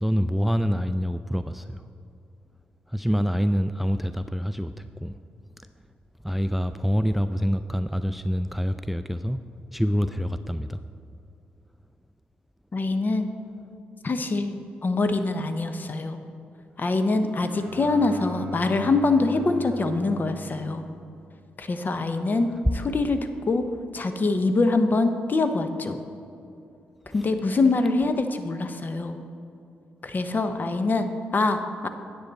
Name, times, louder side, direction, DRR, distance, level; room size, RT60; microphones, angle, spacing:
voice 1, 0.0-1.8 2.9-5.1 6.2-9.4 9.7-10.8, equal, 5° right, 11 dB, 0.3 m, -26 dB
voice 2, 12.7-13.3 14.0-14.6 14.8-16.2 16.8-20.8 21.6-23.7 23.9-26.0 27.1-29.2 30.0-31.9, left 3 dB, 40° left, 8 dB, 0.8 m, -24 dB
Bowed string instrument, 17.3-21.7, right 2 dB, 50° right, 0.9 m, -41 dB
9.8 x 7.9 x 4.1 m, 2.6 s
hypercardioid pair, 45°, 5 cm